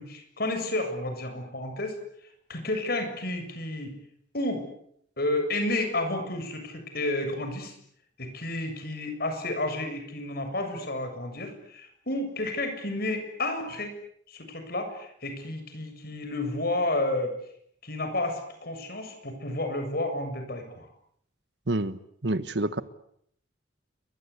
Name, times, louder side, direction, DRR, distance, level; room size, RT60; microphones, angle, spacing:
voice 1, 0.0-2.0 2.5-3.9 4.3-4.6 5.2-7.8 8.2-13.9 14.3-17.4 17.8-20.9, left 2 dB, 55° left, 6 dB, 7.4 m, -31 dB
voice 2, 21.7-22.8, right 2 dB, 65° right, 14 dB, 1.4 m, -28 dB
29.5 x 23.5 x 8.5 m, 0.70 s
head